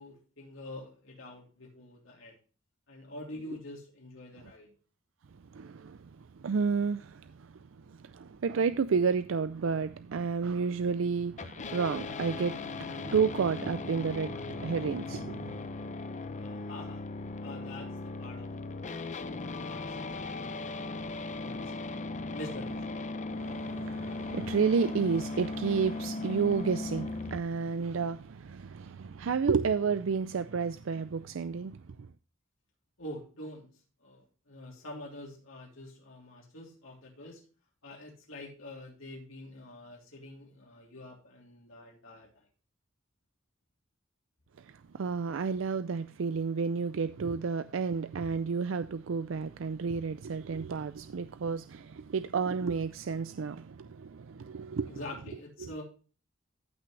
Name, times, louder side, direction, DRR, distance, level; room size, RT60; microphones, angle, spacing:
voice 1, 0.0-2.3 2.9-4.7 16.3-17.0 17.4-19.2 19.6-20.2 20.5-20.9 21.1-21.7 22.3-23.0 33.0-33.7 34.0-37.4 37.8-42.3 54.9-55.8, left 1 dB, 85° left, 3.2 m, -46 dB
voice 2, 5.5-15.6 23.3-32.0 44.6-55.0 55.6-55.7, right 5 dB, 75° right, 0.4 m, -31 dB
sound 1, 11.4-27.4, left 3 dB, 40° left, 0.7 m, -38 dB
14.5 x 6.0 x 3.2 m
head